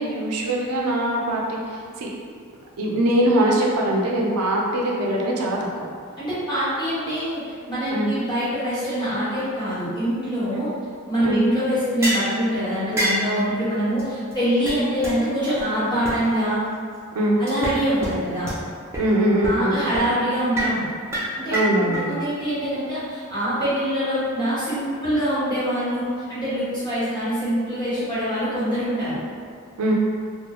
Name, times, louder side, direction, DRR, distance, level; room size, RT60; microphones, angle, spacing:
voice 1, 0.0-2.1 2.8-5.6 7.9-8.1 11.2-11.4 17.1-17.4 19.0-19.8 21.5-22.1 29.8-29.9, right 1 dB, 85° right, -2 dB, 0.4 m, -22 dB
voice 2, 6.2-10.7 11.1-16.6 17.4-18.5 19.4-20.9 21.4-21.6 21.8-29.2, equal, 20° left, -13 dB, 1.0 m, -24 dB
sound 1, 12.0-12.3 13.0-13.3 14.0-14.1 14.3-14.4 14.7-14.8 15.0-15.1 15.6-15.7 16.0-16.1 17.5-17.7 18.0-18.1 18.5-18.6 18.9-19.0 19.4-19.6 19.9-20.1 20.5-20.7 21.1-22.0, right 1 dB, 10° right, 0.4 m, -25 dB
2.3 x 2.1 x 2.9 m, 2.1 s
head